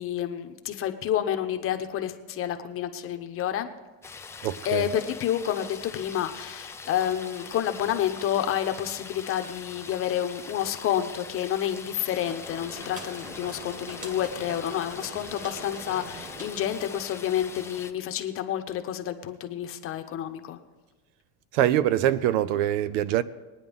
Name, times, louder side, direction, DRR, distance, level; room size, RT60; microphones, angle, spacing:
voice 1, 0.0-3.7 4.6-20.6, left 10 dB, 35° left, 0.9 m, -29 dB
sound 1, 4.0-17.9, left 5 dB, 5° left, 0.4 m, -43 dB
voice 2, 4.4-4.9 21.5-23.2, right 12 dB, 70° right, 0.7 m, -24 dB
sound 2, 11.8-17.3, equal, 20° right, 1.7 m, -43 dB
22.0 x 9.6 x 3.6 m
supercardioid pair, 140°, 39 cm